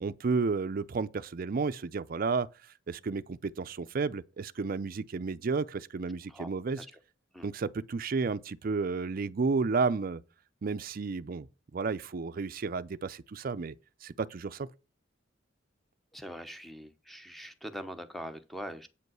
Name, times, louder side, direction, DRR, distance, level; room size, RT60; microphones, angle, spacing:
voice 1, 0.0-2.5 2.9-6.8 7.4-10.2 10.6-11.5 11.7-13.7 14.0-14.7, right 4 dB, 45° right, 0.5 m, -32 dB
voice 2, 16.1-18.9, equal, ahead, 0.8 m, -42 dB
8.5 x 5.3 x 6.1 m
head